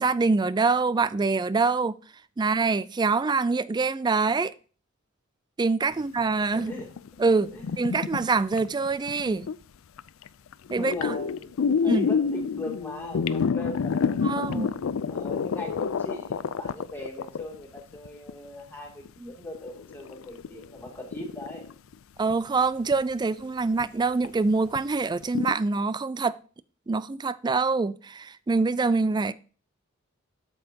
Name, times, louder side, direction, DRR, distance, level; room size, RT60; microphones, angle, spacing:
voice 1, 0.0-2.0 2.4-4.5 5.6-6.7 7.2-9.5 10.7-11.2 11.9-12.1 14.2-14.7 22.2-26.4 26.9-29.3, right 4 dB, 20° right, 0.3 m, -25 dB
voice 2, 6.5-6.9 7.5-8.0 10.8-14.7 15.1-21.7, left 1 dB, 10° left, 2.7 m, -40 dB
sound 1, 6.6-9.5 10.0-10.3 10.5-18.5 19.0-19.1 19.5-21.9 22.3-22.5 22.9-23.0 23.7-23.8 24.2-24.3 24.7-24.8 25.2-25.5, left 6 dB, 70° left, 0.4 m, -28 dB
8.8 x 7.7 x 2.8 m
head